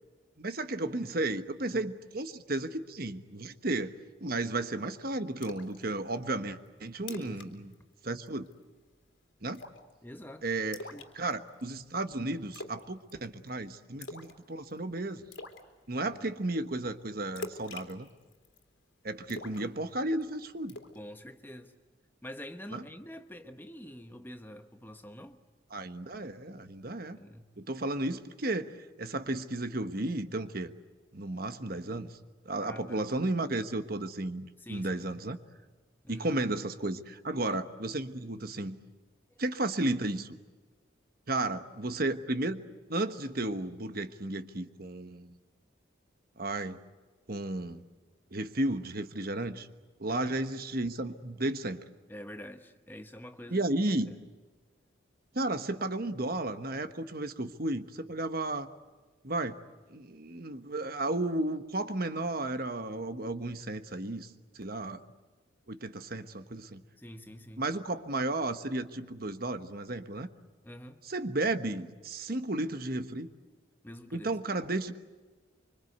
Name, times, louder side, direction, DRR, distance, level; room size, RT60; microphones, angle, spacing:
voice 1, 0.4-7.7 8.0-8.5 9.4-9.6 10.4-10.8 11.1-15.2 15.9-18.1 19.0-20.8 22.7-22.8 25.7-27.2 27.6-30.7 31.1-32.1 32.4-35.4 36.1-38.8 39.4-40.4 41.3-42.6 42.9-45.3 46.4-46.8 47.3-47.8 48.3-49.7 50.0-51.8 53.5-54.1 55.3-58.7 59.2-59.6 59.9-64.3 64.5-65.0 65.7-66.8 67.6-70.3 71.0-73.3 74.1-75.0, right 2 dB, 50° right, 9 dB, 1.3 m, -33 dB
Splash splatter, 5.4-5.8 6.1-6.2 6.7-6.8 7.0-7.5 7.7-7.9 8.3-8.6 9.5-9.9 10.7-11.6 12.5-12.8 13.1-13.5 14.0-14.4 14.7-14.8 15.3-15.6 17.4-18.6 19.3-20.2 20.7-21.0, left 2 dB, 70° left, 3.1 m, -43 dB
voice 2, 7.1-7.7 10.0-10.5 10.9-11.1 16.1-16.4 20.9-21.7 22.2-25.4 27.1-27.5 32.6-33.1 34.6-35.3 36.0-36.3 50.1-50.4 52.1-53.6 54.1-54.2 67.0-67.6 70.6-71.0 73.8-74.3, equal, 10° left, 7 dB, 1.0 m, -46 dB
25.5 x 25.5 x 8.1 m, 1.3 s
head